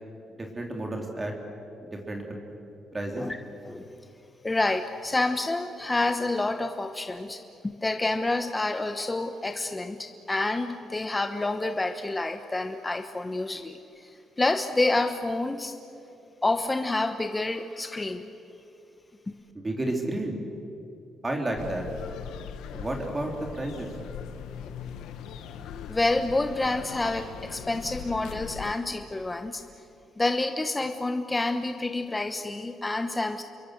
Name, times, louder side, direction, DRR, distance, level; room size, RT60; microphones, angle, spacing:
voice 1, 0.4-1.3 1.8-2.4 2.9-3.3 19.5-20.3 21.2-21.9 22.7-23.9, right 1 dB, 25° right, 1 dB, 3.6 m, -31 dB
voice 2, 3.6-4.0 4.4-14.1 14.4-15.7 16.4-18.3 25.9-29.6 30.2-33.4, left 2 dB, 20° left, 7 dB, 1.0 m, -28 dB
sound 1, 21.5-28.7, left 8 dB, 90° left, 1.2 m, -40 dB
28.5 x 23.0 x 6.7 m, 2.8 s
cardioid pair, 90°, 0 cm